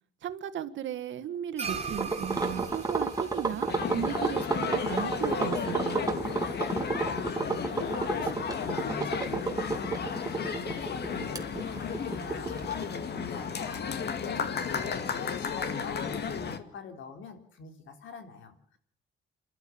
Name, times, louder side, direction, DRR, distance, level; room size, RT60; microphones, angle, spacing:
voice 1, 0.2-6.1, right 10 dB, 70° right, 11 dB, 1.7 m, -36 dB
sound 1, 1.6-6.2, right 5 dB, 35° right, 4.0 m, -41 dB
sound 2, 2.0-12.8, right 3 dB, 20° right, 2.7 m, -31 dB
sound 3, 3.7-16.6, left 6 dB, 55° left, 2.3 m, -33 dB
voice 2, 7.3-18.6, left 5 dB, 75° left, 6 dB, 3.8 m, -43 dB
28.5 x 12.5 x 8.6 m, 0.63 s
cardioid pair, 90°, 20 cm